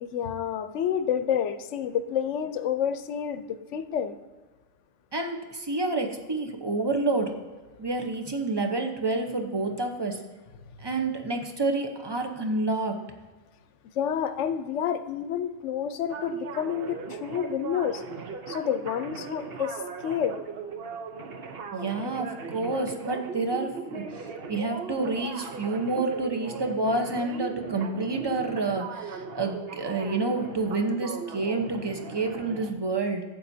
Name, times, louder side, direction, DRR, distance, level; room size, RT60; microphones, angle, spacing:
voice 1, 0.0-4.2 14.0-18.0 18.5-20.4, left 8 dB, 70° left, 11 dB, 0.9 m, -29 dB
voice 2, 5.1-7.3 7.8-10.2 10.8-13.0 21.7-33.2, right 3 dB, 25° right, 4 dB, 0.8 m, -29 dB
sound 1, 16.1-32.7, right 5 dB, 55° right, 0.9 m, -38 dB
11.5 x 8.6 x 2.7 m, 1.3 s
omnidirectional pair, 1.3 m